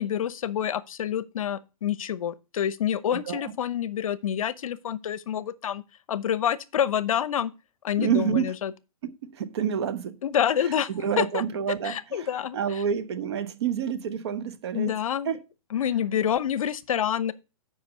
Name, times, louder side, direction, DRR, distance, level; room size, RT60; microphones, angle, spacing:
voice 1, 0.0-5.8 6.1-7.5 7.8-8.7 10.2-10.9 11.2-11.4 11.8-12.8 14.7-15.4 15.7-17.3, left 9 dB, 70° left, 0.7 m, -27 dB
voice 2, 3.1-3.5 8.0-8.5 9.0-10.2 10.9-15.0 15.3-15.4, right 8 dB, 50° right, 0.9 m, -28 dB
8.1 x 5.1 x 6.1 m
hypercardioid pair, 160°, 18 cm